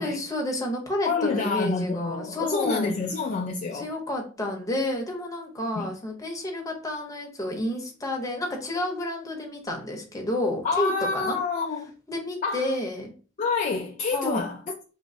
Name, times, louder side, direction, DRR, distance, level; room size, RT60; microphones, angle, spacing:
voice 1, 0.0-2.9 3.7-11.4 12.1-13.1 14.1-14.4, left 1 dB, 15° left, 0.8 m, -30 dB
voice 2, 1.1-3.9 5.8-5.9 10.6-11.9 12.4-12.7 13.4-14.6, left 4 dB, 40° left, 0.4 m, -27 dB
3.0 x 2.6 x 3.1 m
head